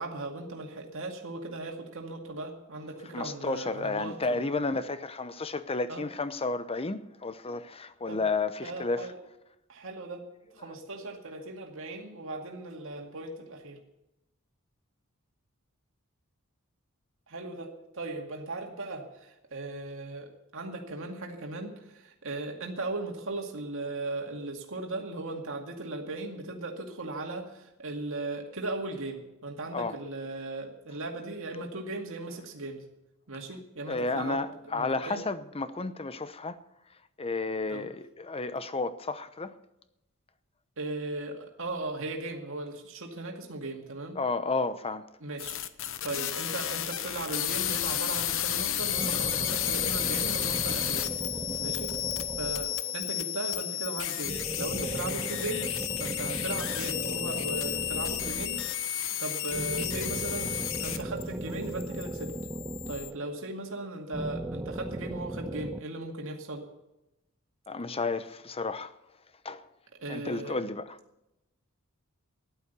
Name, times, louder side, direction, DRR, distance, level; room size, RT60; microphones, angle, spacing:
voice 1, 0.0-4.4 5.9-6.0 8.1-8.3 8.6-9.2 9.7-10.3 10.5-13.8 17.3-32.9 33.3-34.4 34.7-35.2 37.7-37.9 40.8-44.2 45.2-45.6 46.0-51.1 51.6-51.9 52.4-55.7 56.0-58.6 58.9-62.3 62.9-66.7 70.0-70.6, right 2 dB, 65° right, 2.3 m, -37 dB
voice 2, 3.1-9.1 29.7-30.0 33.8-36.6 36.9-39.6 44.2-45.1 67.7-68.9 69.4-69.7 70.1-71.0, left 3 dB, 25° left, 0.8 m, -32 dB
sound 1, 45.4-61.2 61.5-63.1, left 11 dB, 65° left, 0.9 m, -32 dB
sound 2, 48.9-53.1 54.2-58.9 59.5-63.5 64.1-65.8, right 2 dB, 10° right, 0.4 m, -38 dB
14.0 x 11.5 x 6.8 m
head